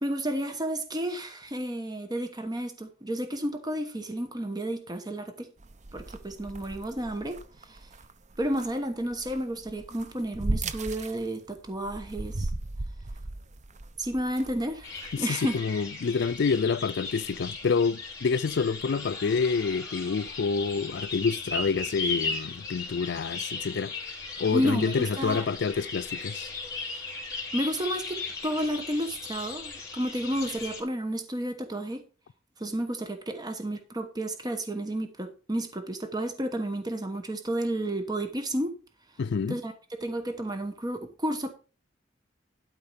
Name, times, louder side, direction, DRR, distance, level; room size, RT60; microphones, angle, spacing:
voice 1, 0.0-5.5 5.9-7.9 8.4-12.5 14.0-15.6 24.5-25.4 26.9-27.2 27.5-32.0 32.6-38.7 39.5-39.7 40.0-41.5, right 1 dB, 20° right, 1.0 m, -31 dB
sound 1, 5.6-15.4, right 2 dB, 40° right, 0.7 m, -37 dB
sound 2, 14.8-30.8, left 4 dB, 15° left, 3.7 m, -37 dB
voice 2, 15.1-23.9 24.4-26.5 39.2-39.6, left 5 dB, 60° left, 0.4 m, -28 dB
12.0 x 4.4 x 5.7 m
head